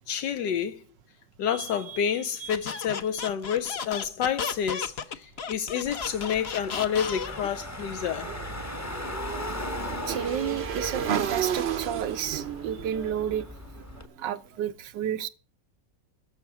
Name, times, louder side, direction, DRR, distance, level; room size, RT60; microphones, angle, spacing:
voice 1, 0.1-0.8 1.4-8.3, left 8 dB, 80° left, 1.5 m, -29 dB
voice 2, 1.5-2.0 2.4-2.8 3.1-3.3 10.1-13.5 14.2-15.3, right 9 dB, 85° right, 1.6 m, -32 dB
Squeak, 2.5-7.5, left 6 dB, 45° left, 0.9 m, -34 dB
Car / Engine, 5.8-14.0, left 1 dB, 10° left, 0.8 m, -38 dB
Motorcycle / Engine, 8.2-14.3, right 8 dB, 50° right, 0.8 m, -33 dB
13.5 x 5.8 x 9.1 m
omnidirectional pair, 1.9 m